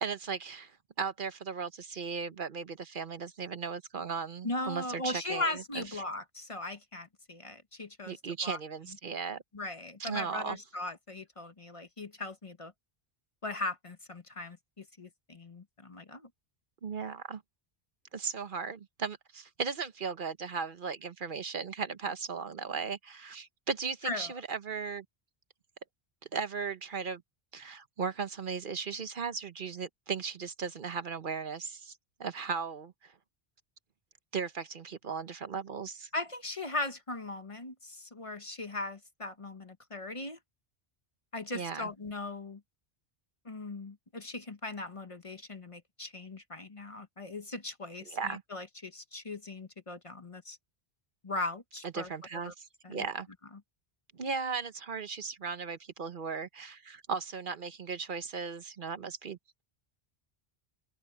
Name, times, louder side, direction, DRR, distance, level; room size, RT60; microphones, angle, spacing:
voice 1, 0.0-6.0 8.1-9.4 10.0-10.6 16.8-17.4 18.1-25.0 26.3-27.2 27.5-33.1 34.3-36.1 41.5-41.9 48.1-48.4 51.8-53.3 54.1-59.6, right 5 dB, 55° right, 1.0 m, -37 dB
voice 2, 4.4-8.1 8.4-8.6 9.5-12.7 13.4-16.3 24.0-24.3 36.1-40.4 41.3-42.6 43.4-50.6 51.2-52.1 52.4-52.5 52.8-53.1, left 2 dB, 35° left, 1.1 m, -39 dB
open air
omnidirectional pair, 1.0 m